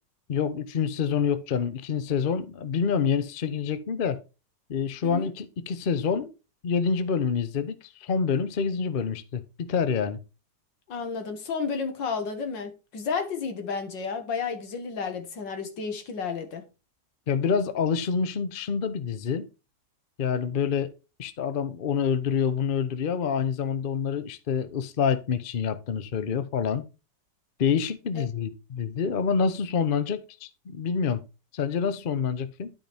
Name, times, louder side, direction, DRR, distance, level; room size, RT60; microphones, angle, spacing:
voice 1, 0.3-4.2 4.7-6.3 6.6-10.2 17.3-19.5 20.2-20.9 21.2-26.8 27.6-31.2 31.5-32.7, left 6 dB, 50° left, 0.6 m, -27 dB
voice 2, 10.9-16.6 28.1-28.2, left 5 dB, 85° left, 2.2 m, -32 dB
12.0 x 4.9 x 3.4 m
omnidirectional pair, 1.9 m